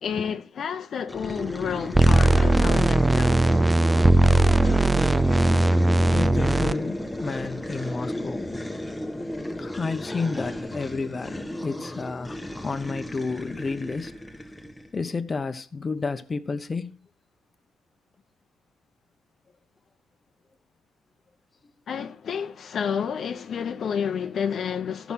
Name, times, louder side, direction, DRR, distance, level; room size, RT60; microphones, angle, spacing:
voice 1, 0.0-3.6 9.2-9.3 21.9-25.1, left 7 dB, 60° left, 0.8 m, -30 dB
sound 1, 1.1-15.0, left 1 dB, 10° left, 1.3 m, -33 dB
sound 2, 1.9-6.7, right 2 dB, 15° right, 0.5 m, -19 dB
voice 2, 6.1-8.5 9.6-14.1 14.9-16.9, left 4 dB, 30° left, 1.0 m, -31 dB
13.5 x 6.1 x 5.7 m
cardioid pair, 90°, 0 cm